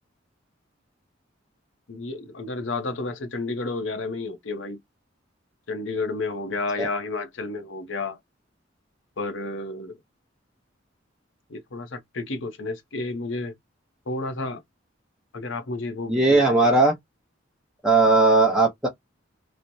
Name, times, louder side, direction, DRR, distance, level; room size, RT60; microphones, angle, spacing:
voice 1, 1.9-4.8 5.7-8.2 9.2-10.0 11.5-13.5 14.1-14.6 15.3-16.7, left 3 dB, 75° left, 0.8 m, -31 dB
voice 2, 16.1-16.9 17.8-18.9, right 3 dB, 5° right, 0.6 m, -18 dB
3.1 x 2.1 x 2.6 m
head